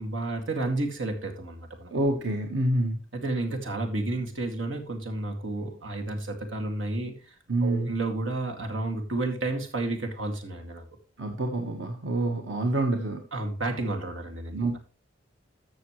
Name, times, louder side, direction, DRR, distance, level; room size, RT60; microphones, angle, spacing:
voice 1, 0.0-1.9 3.1-7.3 7.6-10.8 13.3-14.6, right 2 dB, 85° right, 3 dB, 2.3 m, -31 dB
voice 2, 1.9-3.0 7.5-7.9 11.2-13.2 14.5-14.8, right 1 dB, 65° right, 3 dB, 1.4 m, -27 dB
13.5 x 6.6 x 3.2 m, 0.38 s
head